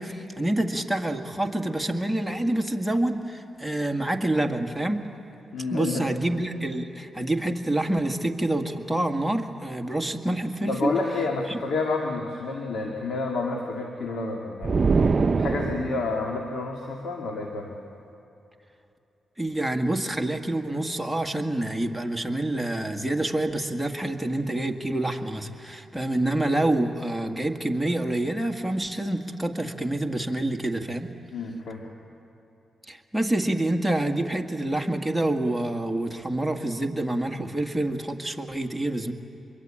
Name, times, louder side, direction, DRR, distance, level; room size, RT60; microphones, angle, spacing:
voice 1, 0.0-5.1 5.7-10.9 11.5-11.6 19.4-31.1 32.9-39.1, right 1 dB, 5° right, 3 dB, 1.9 m, -27 dB
voice 2, 5.5-6.1 10.7-14.9 15.4-17.8 31.3-31.8, left 3 dB, 75° left, 1 dB, 2.1 m, -29 dB
sound 1, 14.6-16.3, right 4 dB, 40° right, 0.7 m, -23 dB
25.0 x 22.5 x 8.7 m, 2.9 s
cardioid pair, 65°, 0 cm